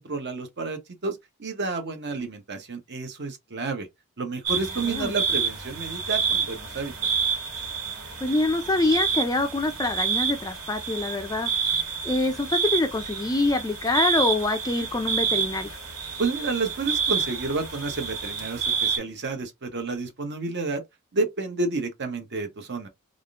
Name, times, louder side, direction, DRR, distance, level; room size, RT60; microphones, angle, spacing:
voice 1, 0.0-3.9 4.2-6.9 16.2-20.8 21.1-22.9, right 3 dB, 50° right, 0.8 m, -30 dB
sound 1, 4.4-19.0, right 6 dB, 85° right, 1.7 m, -28 dB
voice 2, 8.2-11.8 12.0-15.7, left 2 dB, 15° left, 0.4 m, -25 dB
3.5 x 2.5 x 2.4 m
head